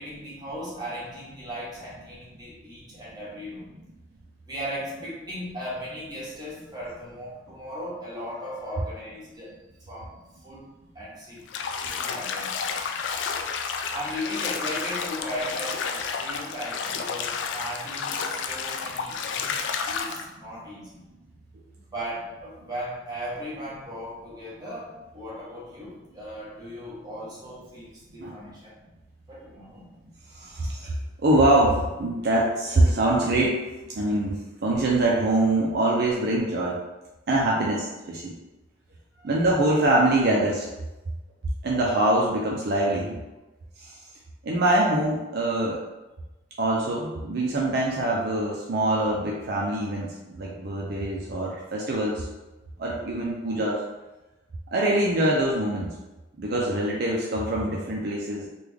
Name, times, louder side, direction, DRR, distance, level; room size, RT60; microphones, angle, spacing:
voice 1, 0.0-3.7 4.4-9.6 9.9-10.2 10.4-10.7 10.9-11.4 11.8-12.9 13.9-21.0 21.8-28.7 29.3-29.9 34.1-34.2 39.1-39.3, equal, 25° right, -7 dB, 1.1 m, -37 dB
Bathtub (filling or washing), 11.5-20.3, left 6 dB, 80° left, 0.3 m, -31 dB
voice 2, 30.3-30.9 31.2-36.8 37.3-38.4 39.2-40.7 41.6-43.2 43.8-44.0 44.4-45.8 46.6-52.3 52.8-53.8 54.7-55.9 56.4-58.5, right 1 dB, 60° right, -3 dB, 0.5 m, -24 dB
3.4 x 2.2 x 3.5 m, 1.1 s
head